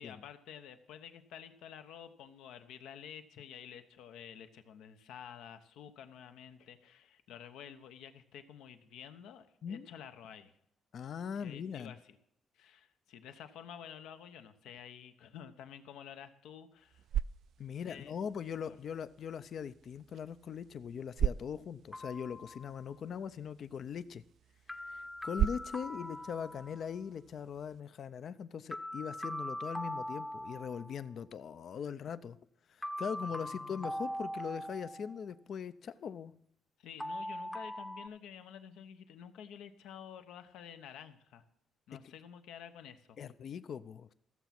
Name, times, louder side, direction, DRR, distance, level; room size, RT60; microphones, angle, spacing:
voice 1, 0.0-10.5 11.3-12.2 12.5-17.0 17.8-18.2 26.0-26.1 33.2-34.0 36.8-41.4 41.9-43.2, left 8 dB, 85° left, 8 dB, 0.9 m, -50 dB
voice 2, 10.9-11.9 17.6-24.2 24.8-32.4 32.7-36.3 43.2-44.1, left 7 dB, 60° left, 14 dB, 0.5 m, -41 dB
sound 1, 16.7-27.8, right 10 dB, 70° right, 0.3 m, -40 dB
sound 2, 21.9-23.1 24.7-27.0 28.7-31.0 32.8-35.2 37.0-38.1, equal, 5° left, 0.7 m, -41 dB
14.5 x 7.0 x 5.9 m, 0.73 s
cardioid pair, 90°, 0 cm